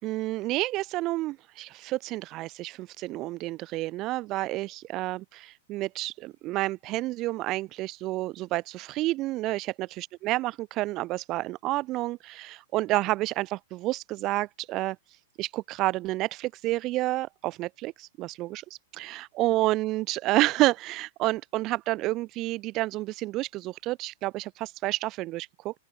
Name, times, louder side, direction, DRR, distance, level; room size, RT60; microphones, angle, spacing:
voice 1, 0.0-15.0 15.4-18.6 18.9-25.7, right 18 dB, 35° right, 4.3 m, -29 dB
open air
hypercardioid pair, 140°, 0 cm